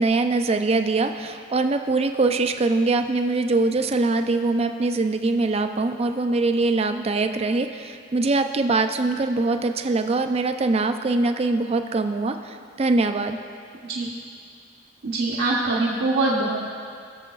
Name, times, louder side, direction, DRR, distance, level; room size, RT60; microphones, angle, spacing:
voice 1, 0.0-13.4, right 3 dB, 30° right, 7 dB, 0.4 m, -23 dB
voice 2, 15.0-16.6, right 2 dB, 70° right, -6 dB, 0.9 m, -23 dB
20.5 x 7.0 x 2.4 m, 2.2 s
head